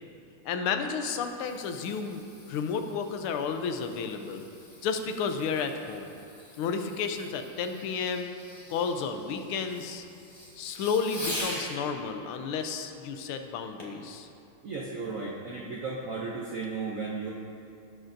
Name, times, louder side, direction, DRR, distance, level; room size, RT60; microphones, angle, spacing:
voice 1, 0.4-4.4 4.8-6.1 6.6-8.3 8.7-10.1 10.6-14.3, left 5 dB, 85° left, 6 dB, 1.5 m, -32 dB
Fireworks, 0.9-11.8 13.8-14.1 14.7-14.8, left 1 dB, 25° left, 1.0 m, -44 dB
voice 2, 14.6-17.3, right 4 dB, 70° right, -3 dB, 0.8 m, -35 dB
16.5 x 6.4 x 2.6 m, 2.7 s
omnidirectional pair, 2.4 m